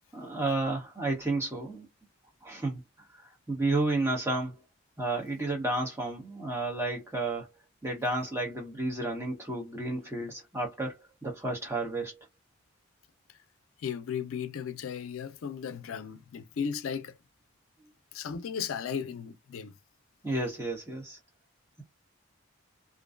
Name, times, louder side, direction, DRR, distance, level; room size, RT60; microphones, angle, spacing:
voice 1, 0.1-1.9 2.4-2.8 3.1-4.6 5.0-7.5 7.8-12.2 20.2-21.2, right 2 dB, 15° right, 0.8 m, -32 dB
voice 2, 13.8-17.2 18.1-19.7, left 7 dB, 90° left, 0.4 m, -35 dB
2.5 x 2.1 x 2.4 m
head